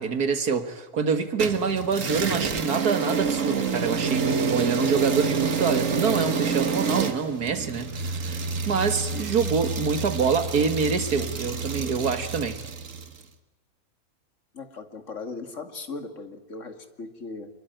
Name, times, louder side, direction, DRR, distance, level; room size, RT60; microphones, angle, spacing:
voice 1, 0.0-12.6, right 5 dB, 85° right, 2.3 m, -26 dB
sound 1, 1.4-13.2, right 5 dB, 55° right, 1.9 m, -28 dB
voice 2, 14.5-17.5, left 3 dB, 55° left, 2.5 m, -38 dB
25.0 x 22.0 x 9.2 m
omnidirectional pair, 1.6 m